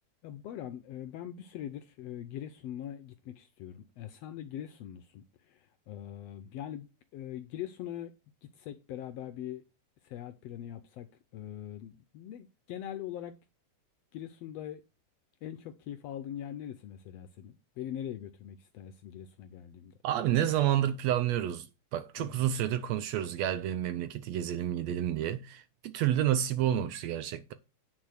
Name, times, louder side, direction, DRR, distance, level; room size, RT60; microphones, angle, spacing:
voice 1, 0.2-8.1 8.5-9.6 10.0-11.1 11.3-13.3 14.1-14.8 15.4-19.9 22.2-22.5, left 11 dB, 75° left, 1.5 m, -42 dB
voice 2, 20.0-21.7 21.9-27.5, right 11 dB, 75° right, 1.6 m, -29 dB
9.5 x 4.4 x 6.3 m
omnidirectional pair, 3.4 m